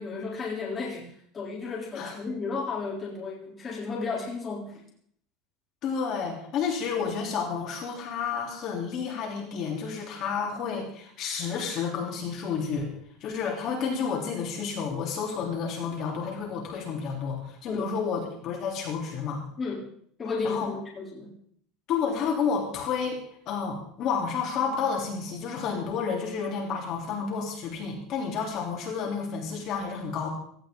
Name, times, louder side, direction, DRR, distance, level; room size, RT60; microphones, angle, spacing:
voice 1, 0.0-4.8 17.7-17.9 19.6-19.9 20.2-21.3, left 4 dB, 20° left, -4 dB, 3.6 m, -33 dB
voice 2, 5.8-12.9 13.2-19.4 20.4-20.7 21.9-23.2 23.5-30.3, left 6 dB, 40° left, -1 dB, 3.5 m, -30 dB
17.5 x 15.0 x 3.9 m, 0.63 s
cardioid pair, 165°, 0 cm